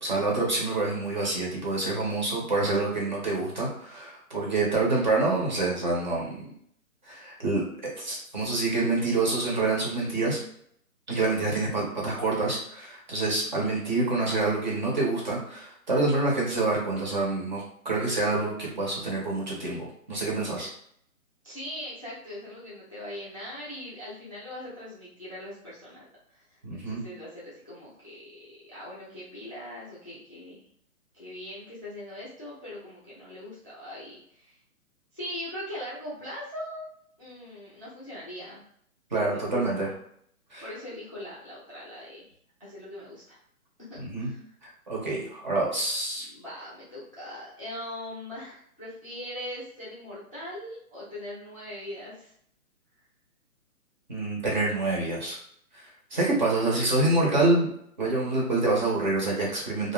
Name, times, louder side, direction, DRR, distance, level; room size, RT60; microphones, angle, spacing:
voice 1, 0.0-6.4 7.1-7.6 8.0-10.4 11.1-20.7 26.6-27.0 39.1-39.9 40.5-40.6 44.0-44.3 44.6-46.3 54.1-55.4 55.7-55.8 56.1-57.7 58.0-59.9, right 2 dB, 35° right, -4 dB, 0.7 m, -27 dB
voice 2, 21.4-26.1 26.3-28.2 28.7-30.6 31.1-34.6 35.1-36.8 37.2-38.6 39.1-39.9 40.6-42.2 42.6-43.4 43.9-44.5 46.2-52.3 56.6-56.9, left 1 dB, 25° left, -8 dB, 0.4 m, -41 dB
2.4 x 2.1 x 3.5 m, 0.67 s
hypercardioid pair, 165°, 43 cm